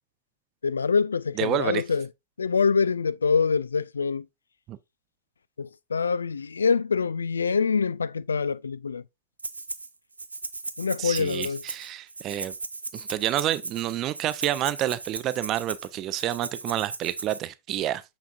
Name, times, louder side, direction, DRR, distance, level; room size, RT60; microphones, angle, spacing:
voice 1, 0.6-2.1 2.4-4.3 5.6-9.0 10.8-11.6, left 5 dB, 75° left, 0.3 m, -25 dB
voice 2, 1.4-1.8 4.7-4.8 11.0-12.5 12.9-18.0, right 13 dB, 35° right, 0.6 m, -29 dB
Rattle (instrument), 9.4-9.9 10.2-17.4, right 3 dB, 80° right, 0.6 m, -37 dB
7.0 x 5.9 x 2.4 m
figure-of-eight pair, 90°, 0 cm